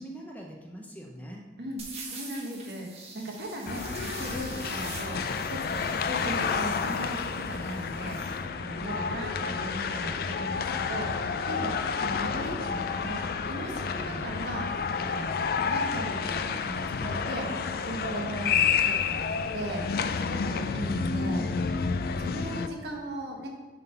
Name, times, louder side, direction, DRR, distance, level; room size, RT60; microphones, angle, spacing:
voice 1, 0.0-1.5 6.0-6.3 8.9-9.2 14.0-14.3, right 1 dB, 10° left, 0 dB, 0.6 m, -43 dB
sound 1, 1.8-8.4, right 3 dB, 35° right, 1.2 m, -45 dB
voice 2, 2.1-5.2 5.5-21.5 22.2-23.5, right 1 dB, 65° right, 0 dB, 1.4 m, -38 dB
sound 2, 3.7-22.7, left 5 dB, 55° left, 0.3 m, -30 dB
7.3 x 3.8 x 5.7 m, 1.2 s
head